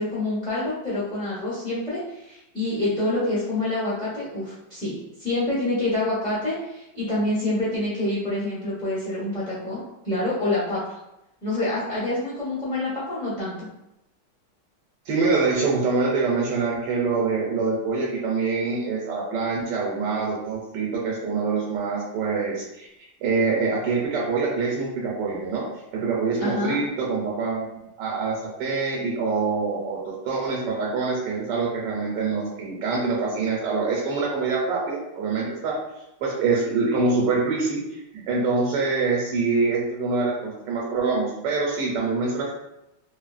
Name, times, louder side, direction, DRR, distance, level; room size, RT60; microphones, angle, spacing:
voice 1, 0.0-10.8 11.4-13.7 26.4-26.8, left 2 dB, 5° left, -9 dB, 0.5 m, -27 dB
voice 2, 15.1-22.9 23.2-25.6 25.9-27.7 28.0-35.8 36.2-42.5, right 4 dB, 90° right, -4 dB, 1.3 m, -25 dB
2.9 x 2.7 x 2.4 m, 0.88 s
omnidirectional pair, 1.9 m